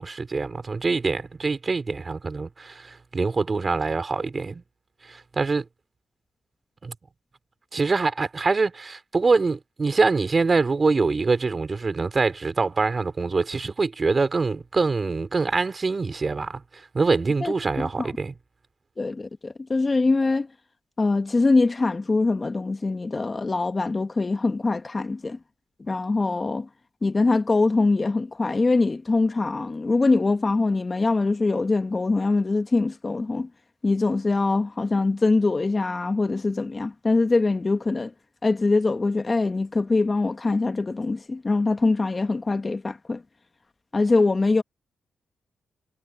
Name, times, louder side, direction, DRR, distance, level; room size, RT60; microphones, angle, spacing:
voice 1, 0.0-4.6 5.1-5.7 6.8-6.9 7.7-16.6 16.9-18.3, right 4 dB, 40° right, 3.6 m, -24 dB
voice 2, 17.4-18.1 19.0-20.5 21.0-25.4 25.9-26.7 27.0-33.5 33.8-38.1 38.4-43.2 43.9-44.6, left 3 dB, 30° left, 1.8 m, -23 dB
cardioid pair, 65°, 0 cm